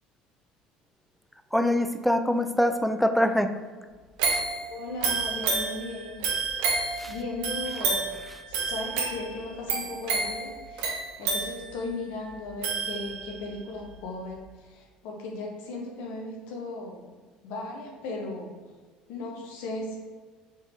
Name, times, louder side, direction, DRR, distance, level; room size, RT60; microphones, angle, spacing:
voice 1, 1.5-3.5 4.3-4.4 7.0-7.1, left 1 dB, ahead, 8 dB, 0.4 m, -24 dB
sound 1, 4.2-13.5 13.9-14.0, right 4 dB, 85° right, 1.0 m, -30 dB
voice 2, 4.7-6.3 7.0-8.0 8.5-10.9 11.2-17.1 17.4-18.7 19.1-20.0, left 2 dB, 75° left, 0 dB, 0.9 m, -37 dB
4.1 x 3.7 x 3.5 m, 1.4 s
supercardioid pair, 95°, 3 cm